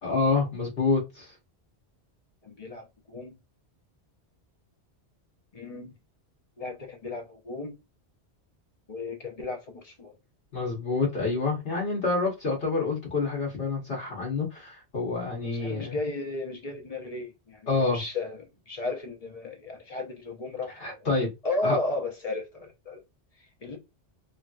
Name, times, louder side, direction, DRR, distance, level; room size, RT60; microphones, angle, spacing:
voice 1, 0.0-1.3 10.5-16.0 17.7-18.0 20.8-21.3 21.6-21.8, left 3 dB, 60° left, 1.2 m, -27 dB
voice 2, 2.4-3.4 5.5-5.9 6.6-7.7 8.9-10.2 15.4-21.1 21.4-23.0 23.6-23.8, left 2 dB, 40° left, 0.7 m, -34 dB
3.1 x 2.7 x 2.3 m
omnidirectional pair, 1.1 m